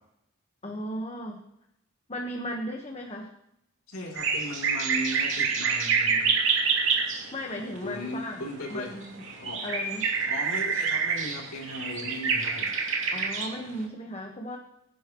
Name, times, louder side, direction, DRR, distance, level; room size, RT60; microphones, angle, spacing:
voice 1, 0.6-1.4 2.1-3.3 7.3-9.2 9.6-10.1 13.1-14.6, equal, 30° left, 1 dB, 1.3 m, -36 dB
voice 2, 3.9-6.3 7.8-8.9 9.4-9.6 10.2-12.7, equal, 90° left, -4 dB, 3.3 m, -37 dB
sound 1, 4.2-7.2 7.8-7.9 8.7-8.8 9.0-13.5, right 5 dB, 65° right, 2.7 m, -27 dB
24.5 x 10.5 x 3.1 m, 0.83 s
head